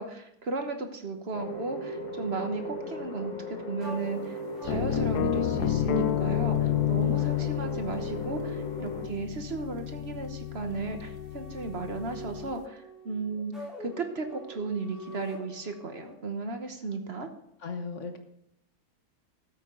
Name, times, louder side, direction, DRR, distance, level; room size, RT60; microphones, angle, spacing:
voice 1, 0.0-13.5 13.8-17.3, right 3 dB, 45° right, 6 dB, 1.3 m, -35 dB
sound 1, 1.3-9.1, equal, 30° left, 1.3 m, -37 dB
sound 2, 3.8-16.1, equal, ahead, 3.5 m, -46 dB
sound 3, 4.6-12.5, left 11 dB, 90° left, 1.2 m, -30 dB
voice 2, 17.6-18.2, left 4 dB, 50° left, 6 dB, 1.5 m, -36 dB
13.0 x 8.5 x 3.8 m, 0.80 s
omnidirectional pair, 1.6 m